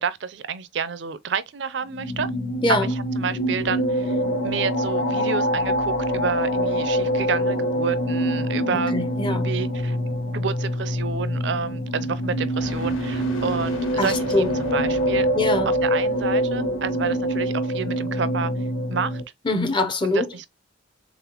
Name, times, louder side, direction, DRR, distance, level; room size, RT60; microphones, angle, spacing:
voice 1, 0.0-2.3 2.7-2.9 3.2-4.2 4.4-8.9 9.2-15.3 15.7-18.5 18.9-19.2 20.0-20.5, right 6 dB, 60° right, 0.5 m, -29 dB
sound 1, 1.9-19.2, equal, 60° left, 0.9 m, -25 dB
voice 2, 8.7-9.5 14.0-14.5 15.4-15.7 19.4-20.3, left 2 dB, 25° left, 0.5 m, -23 dB
sound 2, 12.0-17.0, equal, 85° left, 1.5 m, -40 dB
4.0 x 3.7 x 2.8 m
head